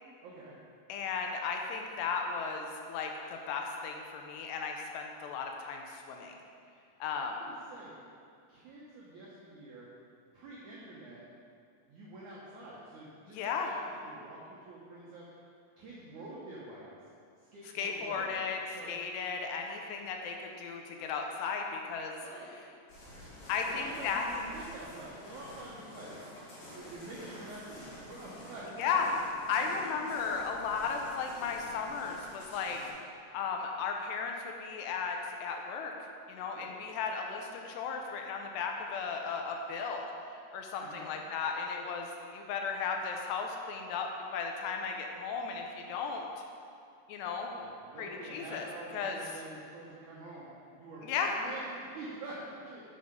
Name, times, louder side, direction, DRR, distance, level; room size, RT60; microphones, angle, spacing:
voice 1, 0.2-0.6 7.2-7.9 8.5-9.9 10.3-11.2 11.9-13.7 14.0-15.4 15.8-16.9 17.5-19.0 22.2-22.5 23.6-26.2 26.7-29.2 29.6-30.7 36.5-36.7 40.8-41.1 47.5-50.5 50.7-52.9, right 2 dB, 85° right, -6 dB, 1.7 m, -47 dB
voice 2, 0.9-6.3 7.0-7.3 13.3-13.7 17.8-22.2 23.5-24.2 28.8-29.1 29.5-32.8 33.3-35.9 36.3-40.1 40.5-46.3 47.1-47.5 48.0-48.7 48.9-49.2 51.0-51.4, left 5 dB, 80° left, 2 dB, 2.6 m, -35 dB
sound 1, 22.9-32.9, left 1 dB, 55° left, 2.9 m, -50 dB
6.9 x 6.7 x 5.1 m, 2.4 s
omnidirectional pair, 5.0 m